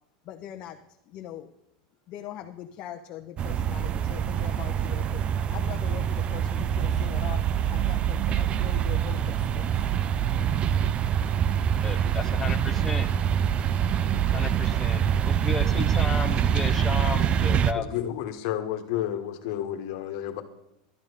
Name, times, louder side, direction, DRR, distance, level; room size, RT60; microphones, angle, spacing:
voice 1, 0.2-1.5 2.1-5.2 5.5-9.8, left 11 dB, 40° left, 3 dB, 0.8 m, -41 dB
sound 1, 3.4-17.7, right 9 dB, 30° right, 0.5 m, -25 dB
voice 2, 11.8-13.1 14.2-18.0, left 4 dB, 10° left, 4 dB, 0.8 m, -34 dB
voice 3, 17.7-20.4, left 11 dB, 60° left, 7 dB, 1.5 m, -31 dB
12.0 x 8.9 x 6.7 m, 0.83 s
supercardioid pair, 140°, 4 cm